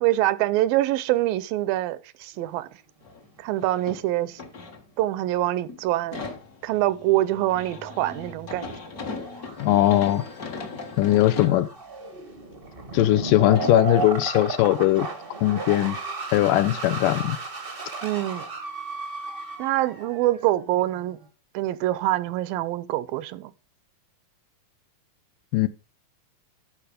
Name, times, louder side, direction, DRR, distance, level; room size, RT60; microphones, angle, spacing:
voice 1, 0.0-2.7 3.4-4.4 5.0-6.2 6.6-8.7 18.0-18.5 19.6-21.2 21.5-23.5, right 15 dB, 85° right, 2.4 m, -25 dB
sound 1, 2.4-2.6 3.1-3.2 8.5-21.3, right 4 dB, 65° right, 0.5 m, -35 dB
sound 2, 3.0-3.3 3.6-5.3 5.6-11.6 12.2-12.3 13.0-13.2 13.5-13.9 15.6-15.7 16.0-16.1, left 4 dB, 55° left, 1.0 m, -38 dB
voice 2, 9.6-10.2 11.0-11.7 12.9-15.1 15.4-16.0 16.3-17.4 25.5-25.7, left 15 dB, 80° left, 2.2 m, -20 dB
12.0 x 4.8 x 5.0 m
omnidirectional pair, 4.0 m